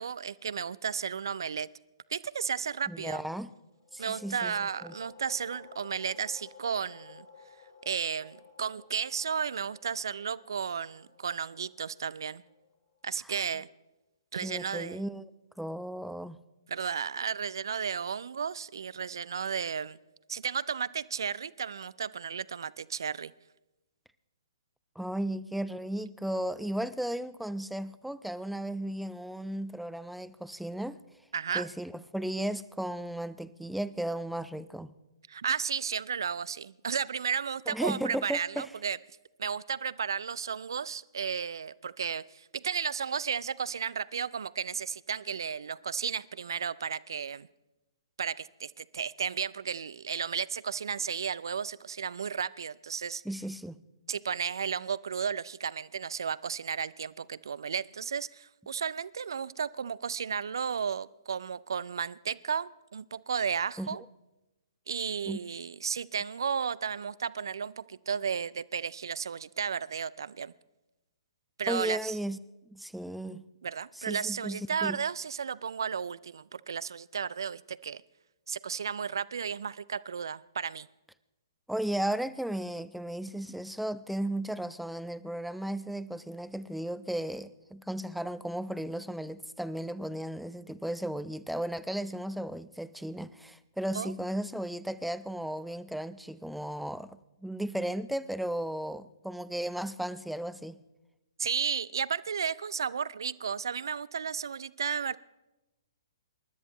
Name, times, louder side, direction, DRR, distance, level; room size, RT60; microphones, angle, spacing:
voice 1, 0.0-1.7 2.1-3.2 4.0-7.3 7.8-12.4 13.0-13.7 14.3-15.0 16.7-20.0 20.3-23.3 31.3-31.7 35.3-39.0 39.4-47.5 48.2-53.2 54.1-64.0 64.9-70.5 71.6-72.1 73.6-78.0 78.5-80.9 93.9-94.1 101.4-105.2, right 6 dB, 65° right, 0.5 m, -33 dB
voice 2, 2.9-3.5 3.9-4.9 13.2-13.3 14.4-15.3 15.6-16.4 25.0-31.0 31.5-34.9 37.7-38.7 53.2-53.8 63.8-63.9 65.3-65.4 71.7-72.4 72.7-73.4 74.0-75.0 81.7-100.8, right 1 dB, ahead, 0.5 m, -35 dB
sound 1, 3.7-13.1, left 6 dB, 35° left, 2.8 m, -55 dB
28.0 x 13.0 x 3.0 m
figure-of-eight pair, 125°, 2 cm